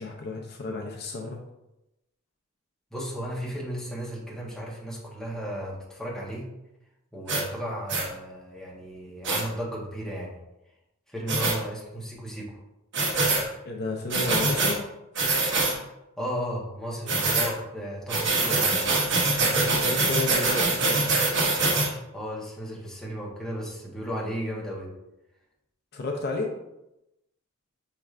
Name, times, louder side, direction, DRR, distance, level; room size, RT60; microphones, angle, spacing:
voice 1, 0.0-1.4 13.7-14.9 19.4-21.1 25.9-26.6, left 3 dB, 50° left, 1 dB, 0.5 m, -32 dB
voice 2, 2.9-6.5 7.1-10.4 11.1-12.6 16.2-18.9 22.1-24.9, equal, ahead, -4 dB, 0.9 m, -34 dB
sound 1, 7.3-7.4 7.9-8.1 9.2-9.4 11.3-11.6 12.9-13.4 14.1-14.8 15.2-15.8 17.1-17.5 18.1-21.9, right 3 dB, 55° right, 0.8 m, -24 dB
5.8 x 3.2 x 2.4 m, 0.91 s
head